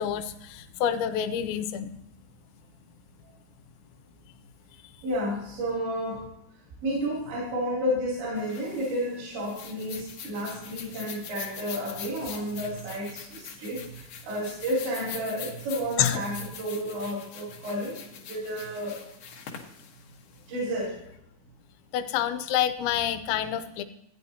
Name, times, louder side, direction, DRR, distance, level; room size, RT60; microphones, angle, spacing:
voice 1, 0.0-1.9 16.0-16.2 21.9-23.8, left 10 dB, 90° left, 10 dB, 3.0 m, -27 dB
voice 2, 5.0-6.2 6.8-13.2 13.6-13.8 14.3-17.9 18.3-19.0 20.5-20.9, equal, 75° right, -5 dB, 5.1 m, -31 dB
sound 1, 8.4-20.8, left 7 dB, 70° left, 2.1 m, -43 dB
15.0 x 9.5 x 2.8 m, 0.81 s
omnidirectional pair, 5.1 m